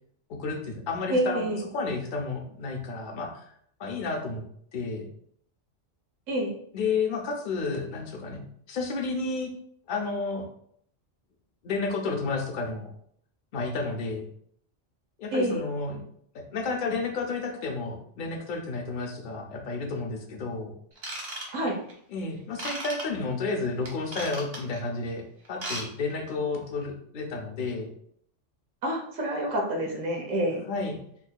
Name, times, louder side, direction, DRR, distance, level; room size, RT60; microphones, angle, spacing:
voice 1, 0.3-3.5 3.8-4.4 4.7-5.0 6.7-9.5 9.9-10.5 11.6-12.9 13.5-14.2 15.2-16.0 16.3-20.7 22.1-25.2 25.5-27.9 30.7-31.0, left 4 dB, 50° left, 2 dB, 0.6 m, -31 dB
voice 2, 1.1-1.6 6.3-6.5 15.3-15.6 21.5-21.8 28.8-30.6, right 1 dB, 80° right, 0 dB, 1.2 m, -27 dB
Ratchet pawl / Tools, 21.0-21.9 22.6-23.0 23.8-24.8 25.4-25.8 26.1-26.3 26.8-26.9, right 1 dB, 55° right, 1.3 m, -35 dB
4.0 x 2.7 x 2.2 m, 0.66 s
omnidirectional pair, 1.3 m